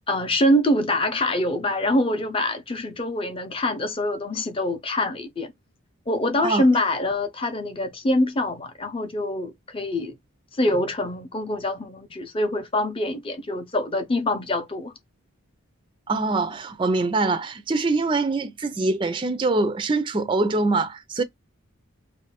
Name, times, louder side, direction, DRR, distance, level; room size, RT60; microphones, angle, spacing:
voice 1, 0.1-5.5 6.1-10.2 10.5-14.9, left 1 dB, 25° left, 0.6 m, -24 dB
voice 2, 16.1-21.2, right 3 dB, 25° right, 0.4 m, -24 dB
2.5 x 2.0 x 3.8 m
head